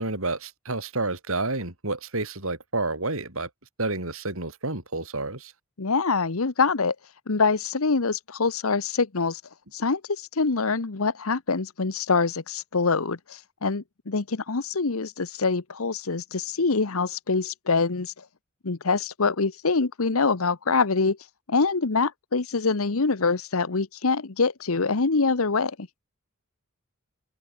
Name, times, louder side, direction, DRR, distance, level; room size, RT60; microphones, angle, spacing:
voice 1, 0.0-3.5 3.8-5.5, right 2 dB, 70° right, 6.3 m, -29 dB
voice 2, 5.8-6.9 7.3-9.4 9.7-18.1 18.6-21.2 21.5-25.9, left 4 dB, 70° left, 1.1 m, -25 dB
open air
head